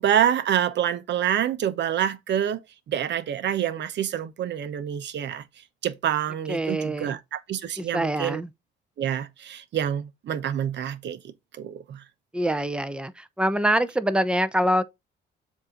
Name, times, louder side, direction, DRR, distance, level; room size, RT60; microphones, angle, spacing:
voice 1, 0.0-2.6 2.9-5.4 5.8-8.4 9.0-12.0, right 10 dB, 65° right, 0.8 m, -27 dB
voice 2, 6.5-7.2 7.8-8.5 12.3-13.1 13.4-14.8, right 1 dB, 5° right, 0.7 m, -24 dB
7.2 x 2.7 x 5.1 m
cardioid pair, 90°, 20 cm